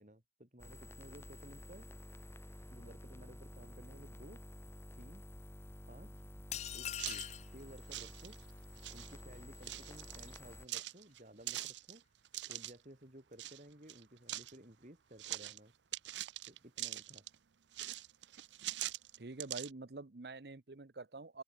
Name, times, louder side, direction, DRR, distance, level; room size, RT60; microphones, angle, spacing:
voice 1, 0.0-1.9 2.7-4.4 5.0-5.2 5.9-6.3 6.7-8.4 8.9-12.0 12.5-15.7 16.5-17.2, right 1 dB, 45° right, 4.3 m, -56 dB
sound 1, 0.6-10.7, left 1 dB, 15° left, 1.1 m, -52 dB
sound 2, 6.5-7.5, left 11 dB, 40° left, 0.4 m, -41 dB
sound 3, 7.0-7.3 7.8-8.5 8.8-9.1 9.6-10.4 10.7-12.7 13.4-13.6 13.9-14.6 15.2-15.6 15.9-17.3 17.7-19.7, right 15 dB, 90° right, 0.6 m, -43 dB
voice 2, 19.2-21.4, right 3 dB, 65° right, 0.9 m, -46 dB
open air
head